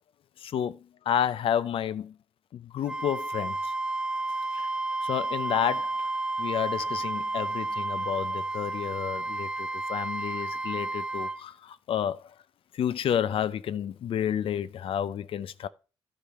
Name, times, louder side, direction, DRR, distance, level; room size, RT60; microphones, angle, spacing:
voice 1, 0.4-2.2 2.5-3.7 4.5-4.7 5.0-6.1 6.4-12.3 12.7-15.7, left 9 dB, 70° left, 0.5 m, -30 dB
Wind instrument woodwind instrument, 2.9-11.4, right 2 dB, 10° right, 0.5 m, -31 dB
11.5 x 5.1 x 4.2 m
cardioid pair, 90°, 9 cm